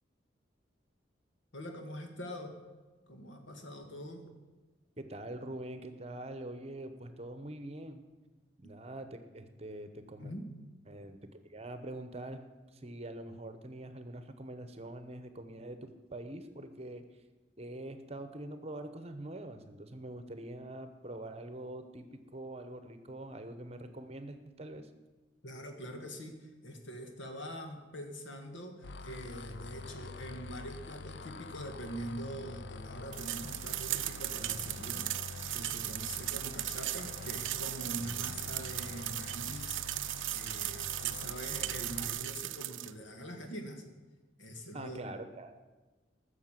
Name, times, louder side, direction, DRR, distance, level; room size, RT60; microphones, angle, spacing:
voice 1, 1.5-2.6 3.1-4.2 10.2-10.4 25.4-35.1 35.5-43.8 44.4-45.1, equal, 80° left, 5 dB, 1.9 m, -44 dB
voice 2, 5.0-8.0 8.6-10.3 10.9-12.4 12.7-17.0 17.6-24.9 36.4-36.6 44.7-45.5, right 1 dB, 35° right, 10 dB, 0.9 m, -44 dB
sound 1, 28.8-42.1, left 4 dB, 65° left, 0.5 m, -46 dB
sound 2, 33.1-42.9, right 15 dB, 85° right, 0.5 m, -37 dB
14.5 x 6.6 x 7.4 m, 1.2 s
head